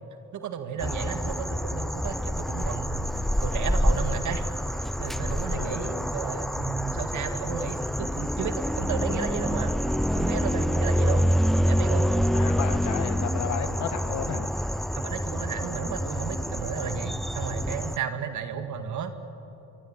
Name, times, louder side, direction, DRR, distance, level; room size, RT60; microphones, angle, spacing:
voice 1, 0.3-4.5 4.8-9.7 10.1-11.3 11.6-12.1 14.9-19.1, right 7 dB, 75° right, 7 dB, 2.2 m, -33 dB
sound 1, 0.8-18.0, equal, ahead, 0.5 m, -27 dB
voice 2, 12.3-14.5, left 8 dB, 70° left, 9 dB, 1.8 m, -33 dB
24.5 x 24.0 x 8.9 m, 2.8 s
cardioid pair, 90°, 30 cm